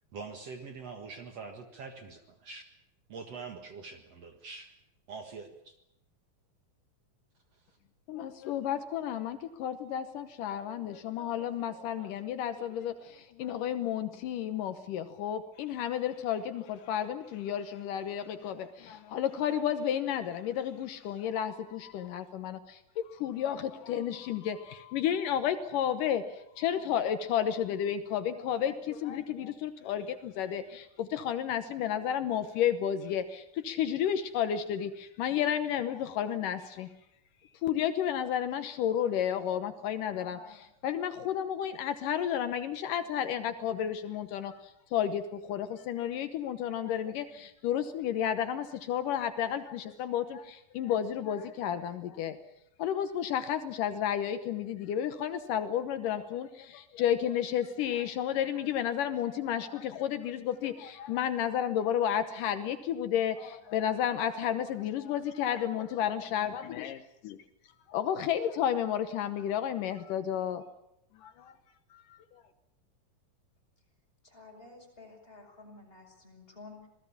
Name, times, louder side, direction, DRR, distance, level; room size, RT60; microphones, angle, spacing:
voice 1, 0.1-2.6 3.1-4.7 5.1-5.8, right 4 dB, 55° right, 5 dB, 2.5 m, -44 dB
voice 2, 8.1-36.9 37.6-52.4 52.8-67.4 67.9-70.6 71.2-71.5 71.9-72.4, left 9 dB, 75° left, 10 dB, 2.6 m, -32 dB
voice 3, 74.2-76.9, left 3 dB, 15° left, 1 dB, 6.8 m, -51 dB
27.0 x 19.5 x 7.2 m, 0.82 s
omnidirectional pair, 3.9 m